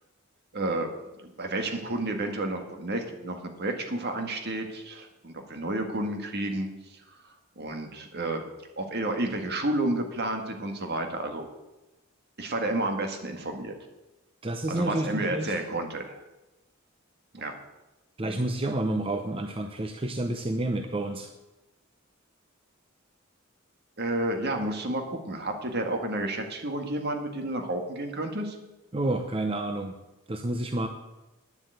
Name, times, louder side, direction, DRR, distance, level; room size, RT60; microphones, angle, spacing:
voice 1, 0.5-0.9 1.2-6.7 7.1-7.2 7.6-8.4 8.8-11.5 12.4-13.7 14.7-16.2 17.3-17.5 24.0-28.6, right 1 dB, 55° right, 4 dB, 1.7 m, -31 dB
voice 2, 14.4-15.5 17.4-17.5 18.2-21.3 28.9-30.0 30.3-30.9, right 1 dB, 25° right, 5 dB, 0.7 m, -29 dB
9.7 x 7.8 x 7.9 m, 1.0 s
head